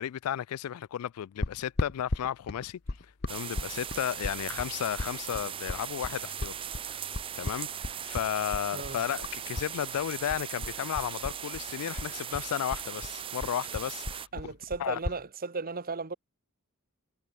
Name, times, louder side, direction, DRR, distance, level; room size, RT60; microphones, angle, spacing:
voice 1, 0.0-2.8 3.3-7.0 7.4-14.5 14.8-15.0, left 10 dB, 85° left, 0.3 m, -34 dB
sound 1, 1.4-9.7 10.0-11.7 12.0-15.2, left 2 dB, 50° left, 1.0 m, -36 dB
sound 2, 3.3-11.1, equal, 10° left, 3.6 m, -61 dB
sound 3, 3.3-14.3, right 9 dB, 25° right, 0.4 m, -39 dB
voice 2, 14.3-16.2, right 4 dB, 45° right, 1.3 m, -36 dB
head